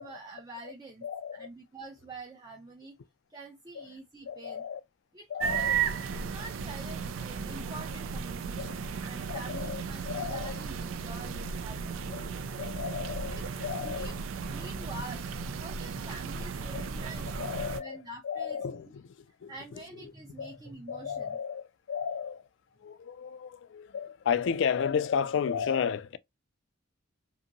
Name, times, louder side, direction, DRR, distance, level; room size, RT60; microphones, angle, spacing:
voice 1, 0.0-1.0 1.3-3.0 3.3-4.6 5.1-5.3 5.5-5.8 6.1-12.2 13.2-13.5 13.8-14.1 14.5-17.4 17.8-18.9 19.5-21.4, right 2 dB, 20° right, 0.4 m, -46 dB
voice 2, 1.0-1.5 3.8-3.9 4.3-4.8 5.3-5.8 8.6-8.7 9.3-10.5 12.1-12.3 12.6-14.1 16.7-16.9 17.4-19.5 20.0-20.1 20.4-20.6 20.9-22.4 22.8-26.2, left 7 dB, 65° left, 0.3 m, -33 dB
sound 1, 5.4-17.8, right 6 dB, 80° right, 0.4 m, -35 dB
2.7 x 2.6 x 2.5 m
head